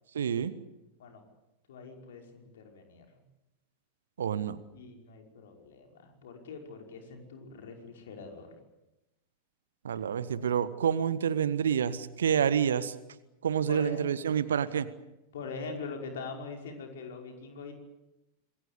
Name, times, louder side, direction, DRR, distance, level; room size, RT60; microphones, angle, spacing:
voice 1, 0.1-0.5 4.2-4.6 9.8-12.9 13.4-14.9, right 8 dB, 65° right, 15 dB, 1.4 m, -28 dB
voice 2, 1.7-3.2 4.7-8.6 13.7-14.1 15.3-17.7, left 4 dB, 60° left, 3 dB, 5.5 m, -43 dB
27.0 x 21.0 x 8.3 m, 0.95 s
figure-of-eight pair, 90°, 0 cm